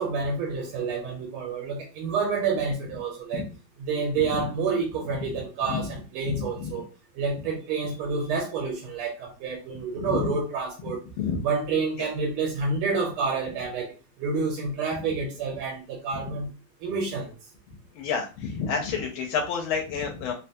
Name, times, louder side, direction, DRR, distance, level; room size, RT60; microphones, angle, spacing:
voice 1, 0.0-3.4 3.8-6.8 7.2-11.0 11.4-13.9 14.2-16.5 16.8-17.3, right 4 dB, 90° right, 1.6 m, -28 dB
voice 2, 6.2-6.7 10.0-10.3 11.2-11.5 12.0-12.1 18.0-20.3, left 6 dB, 80° left, 1.4 m, -29 dB
3.6 x 2.2 x 2.7 m
omnidirectional pair, 2.3 m